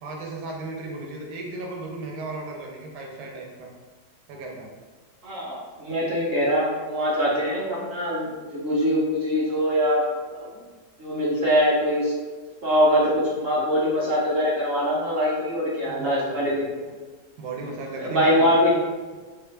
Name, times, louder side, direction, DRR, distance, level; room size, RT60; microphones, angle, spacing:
voice 1, 0.0-3.7 4.3-4.7 15.8-16.9 17.4-18.6, right 2 dB, 80° right, -1 dB, 1.3 m, -35 dB
voice 2, 5.2-10.0 10.3-10.5 11.0-12.1 12.6-16.7 18.0-18.7, equal, 55° right, -7 dB, 0.7 m, -23 dB
3.2 x 2.3 x 3.2 m, 1.4 s
omnidirectional pair, 1.8 m